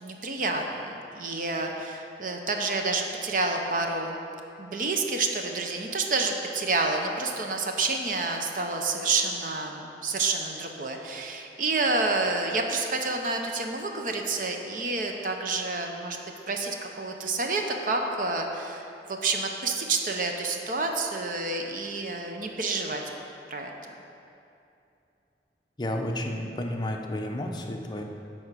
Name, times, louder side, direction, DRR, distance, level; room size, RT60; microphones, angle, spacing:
voice 1, 0.0-4.2 4.6-16.2 16.5-23.0 23.5-23.9, right 3 dB, 50° right, 3 dB, 0.7 m, -29 dB
voice 2, 25.8-28.0, left 1 dB, 25° left, 1 dB, 0.7 m, -31 dB
10.5 x 4.3 x 6.7 m, 2.7 s
head